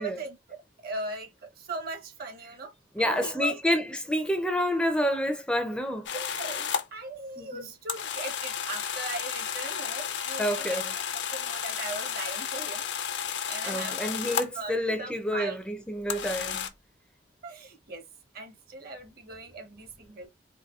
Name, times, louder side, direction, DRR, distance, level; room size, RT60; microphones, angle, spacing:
voice 1, 0.0-3.6 6.1-10.8 11.3-12.9 13.5-15.6 17.4-18.0 18.3-20.3, right 2 dB, 55° right, 0.9 m, -39 dB
voice 2, 2.9-6.1 7.4-7.7 10.4-10.9 13.6-16.7, equal, 5° left, 0.4 m, -28 dB
sound 1, 6.0-6.8 7.9-14.6 16.1-16.7, left 8 dB, 75° left, 0.5 m, -32 dB
4.1 x 2.6 x 2.3 m
head